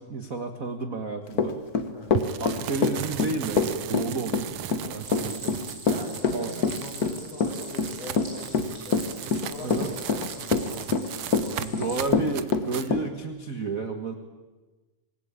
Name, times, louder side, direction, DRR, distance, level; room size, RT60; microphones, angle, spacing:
voice 1, 0.0-1.6 2.4-4.5 4.9-5.6 6.3-6.5 9.6-9.9 11.6-14.1, right 3 dB, 45° right, 6 dB, 1.1 m, -31 dB
Run / Walk footsteps, 1.3-13.1, left 5 dB, 80° left, 0.8 m, -24 dB
sound 1, 2.1-12.9, right 10 dB, 85° right, 1.2 m, -37 dB
Stream, 5.0-12.0, right 1 dB, 25° right, 6.7 m, -44 dB
voice 2, 5.8-11.9, left 1 dB, 45° left, -1 dB, 7.7 m, -42 dB
26.5 x 19.0 x 8.8 m, 1.2 s
omnidirectional pair, 3.9 m